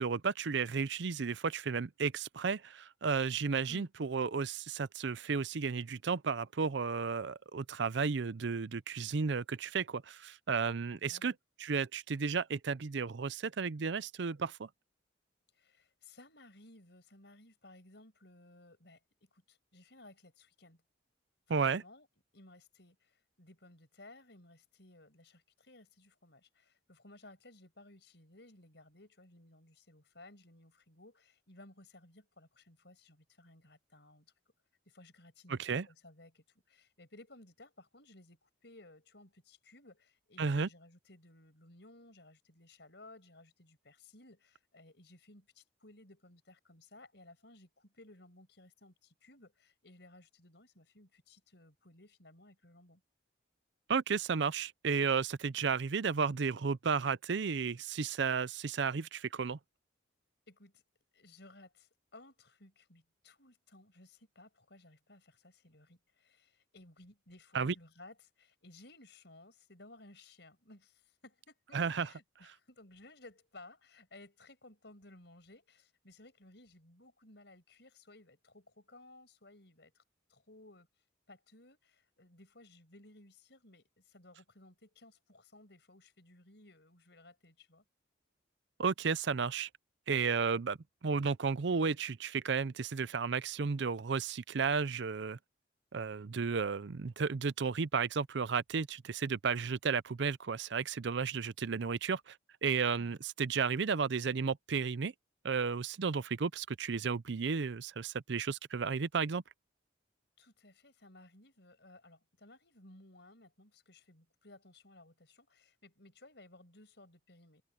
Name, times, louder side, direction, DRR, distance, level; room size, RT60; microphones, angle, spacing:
voice 1, 0.0-11.3 11.6-14.7 21.5-21.8 35.5-35.9 40.4-40.7 53.9-59.6 67.5-67.7 71.7-72.1 88.8-89.7 90.1-90.8 91.0-95.4 95.9-102.4 102.6-105.1 105.4-109.4, right 5 dB, 65° right, 0.5 m, -33 dB
voice 2, 15.5-20.8 21.5-22.1 22.3-34.3 34.9-53.0 60.5-60.8 61.1-80.0 80.3-80.9 81.3-87.8 102.9-103.2 110.4-117.6, left 2 dB, 60° left, 6.3 m, -58 dB
head